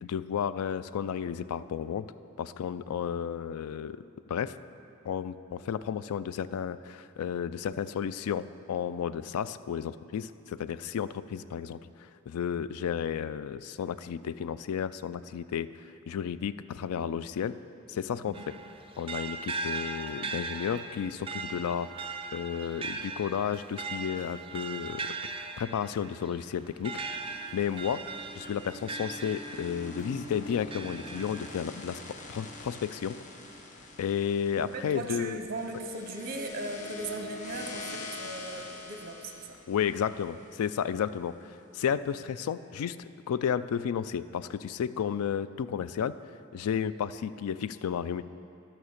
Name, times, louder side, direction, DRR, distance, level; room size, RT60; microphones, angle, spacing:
voice 1, 0.0-2.1 2.4-4.0 4.3-4.6 5.0-11.8 12.3-15.7 16.1-17.6 17.9-18.4 19.0-22.1 22.3-27.0 27.5-28.1 28.3-32.0 32.3-33.2 34.0-35.4 39.7-41.3 41.7-43.0 43.3-46.1 46.5-48.2, left 8 dB, 70° left, 14 dB, 0.3 m, -32 dB
sound 1, 18.3-30.0 30.5-31.5, right 3 dB, 25° right, 0.4 m, -39 dB
sound 2, 27.0-41.2, left 2 dB, 35° left, 0.8 m, -45 dB
voice 2, 34.7-39.6, right 2 dB, 40° right, 5 dB, 0.8 m, -38 dB
11.5 x 5.9 x 6.5 m, 2.7 s
head